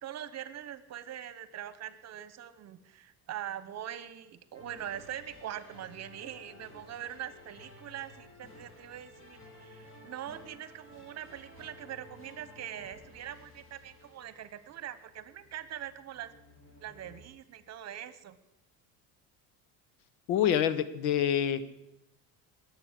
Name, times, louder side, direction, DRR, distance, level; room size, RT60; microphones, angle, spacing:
voice 1, 0.0-16.3 16.8-18.4, right 11 dB, 45° right, 14 dB, 1.2 m, -43 dB
sound 1, 4.5-17.2, left 1 dB, 35° left, 3.7 m, -54 dB
voice 2, 20.3-21.6, left 9 dB, 90° left, 14 dB, 1.2 m, -26 dB
21.5 x 7.9 x 7.5 m, 0.84 s
cardioid pair, 125°, 36 cm